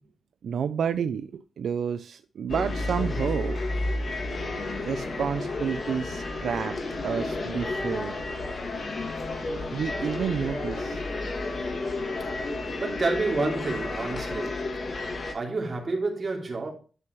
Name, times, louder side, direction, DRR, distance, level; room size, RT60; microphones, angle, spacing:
voice 1, 0.4-3.6 4.5-6.8 7.0-8.1 9.7-11.0, right 7 dB, 80° right, 0.4 m, -30 dB
sound 1, 2.5-15.3, left 2 dB, 45° left, 2.0 m, -31 dB
voice 2, 12.8-14.6 15.3-16.7, right 3 dB, 35° right, 3.0 m, -29 dB
11.0 x 6.0 x 3.1 m
wide cardioid pair, 135°, 0 cm